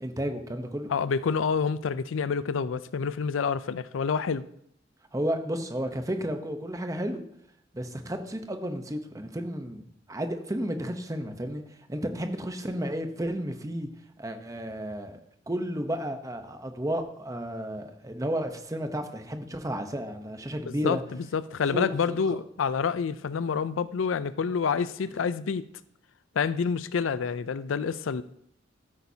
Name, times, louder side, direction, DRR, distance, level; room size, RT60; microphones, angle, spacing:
voice 1, 0.0-0.9 5.1-7.2 7.7-9.8 10.1-11.6 11.9-13.9 14.2-15.2 15.5-21.0 21.7-22.2, equal, 15° right, 0.8 m, -32 dB
voice 2, 0.9-4.4 20.7-21.0 21.3-25.7 26.4-28.2, left 6 dB, 90° left, 0.4 m, -28 dB
13.5 x 8.4 x 2.8 m
head